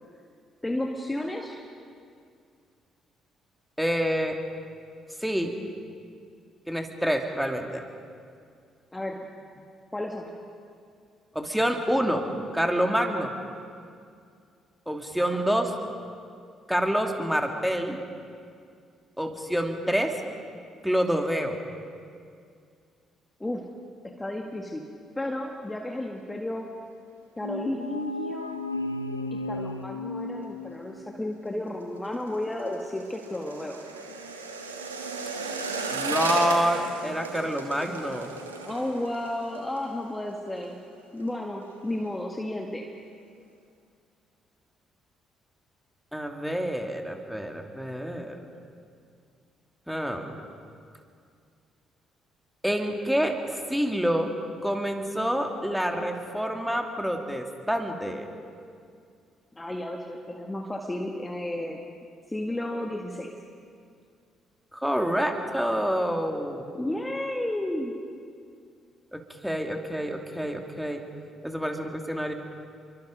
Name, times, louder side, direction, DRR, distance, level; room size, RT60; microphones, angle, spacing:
voice 1, 0.6-1.6 8.9-9.3 9.9-10.4 15.3-15.4 23.4-23.7 24.0-24.9 25.2-26.7 27.4-28.6 29.3-33.8 38.7-40.8 41.1-42.9 59.6-61.8 62.3-63.4 66.7-68.0, left 1 dB, 15° left, 2 dB, 1.9 m, -33 dB
voice 2, 3.8-4.4 5.2-5.6 6.7-7.8 11.3-12.2 12.5-13.3 14.9-15.7 16.7-18.0 19.2-20.2 20.8-21.6 35.9-38.3 46.1-48.4 49.9-50.3 52.6-54.3 54.6-58.3 64.7-66.6 69.1-71.0 71.4-72.3, equal, ahead, 4 dB, 2.7 m, -27 dB
sound 1, 27.4-31.2, left 2 dB, 90° left, 0.5 m, -34 dB
sound 2, 31.7-40.7 41.0-41.3 41.6-42.1 42.5-42.6, right 3 dB, 85° right, 1.4 m, -35 dB
27.5 x 24.0 x 5.2 m, 2.3 s
figure-of-eight pair, 45°, 0 cm